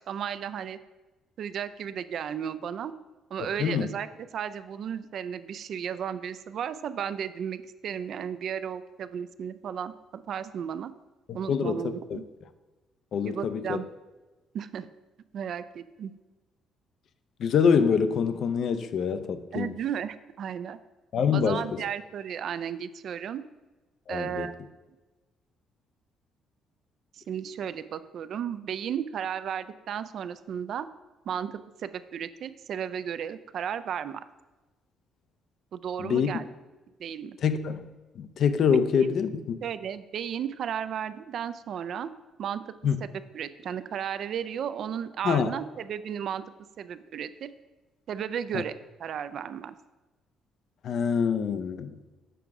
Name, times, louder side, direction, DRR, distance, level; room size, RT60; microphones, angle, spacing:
voice 1, 0.1-0.8 1.4-2.9 3.3-4.1 4.3-10.9 11.3-12.2 13.2-13.9 14.5-14.9 15.3-16.1 19.5-20.8 21.3-23.4 24.1-24.6 27.1-30.9 31.3-34.2 35.7-36.5 37.0-37.4 39.6-42.1 42.4-42.7 43.0-43.1 43.3-46.4 46.8-47.5 48.1-48.7 49.0-49.7, right 8 dB, 60° right, 13 dB, 0.3 m, -34 dB
voice 2, 3.4-3.9 11.3-12.2 13.1-13.8 17.4-19.7 21.1-21.7 24.1-24.5 36.0-36.3 37.4-39.6 42.8-43.0 45.2-45.5 48.5-48.6 50.8-52.0, left 6 dB, 60° left, 11 dB, 0.4 m, -25 dB
6.9 x 4.7 x 3.6 m, 1.2 s
cardioid pair, 100°, 0 cm